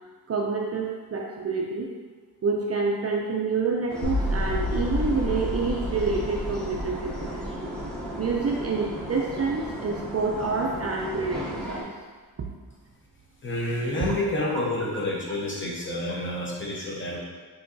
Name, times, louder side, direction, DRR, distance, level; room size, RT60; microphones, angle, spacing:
voice 1, 0.3-1.9 2.4-7.4 8.2-11.9, right 4 dB, 40° right, -1 dB, 0.4 m, -27 dB
sound 1, 3.9-11.8, equal, 5° left, 0.7 m, -36 dB
sound 2, 4.0-10.1, left 1 dB, 85° left, 0.7 m, -32 dB
voice 2, 13.4-17.2, left 1 dB, 30° left, -4 dB, 0.8 m, -29 dB
5.9 x 2.8 x 2.6 m, 1.5 s
wide cardioid pair, 160°, 37 cm